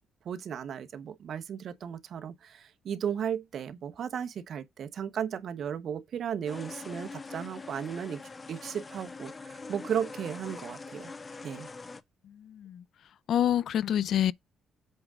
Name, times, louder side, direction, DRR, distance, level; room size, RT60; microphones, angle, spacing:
voice 1, 0.2-8.2 8.5-11.1 11.4-11.7, right 8 dB, 60° right, 1.0 m, -35 dB
sound 1, 6.5-12.0, left 4 dB, 30° left, 0.8 m, -43 dB
voice 2, 12.2-12.8 13.3-14.3, left 10 dB, 70° left, 0.4 m, -27 dB
7.9 x 3.6 x 5.0 m
cardioid pair, 90°, 0 cm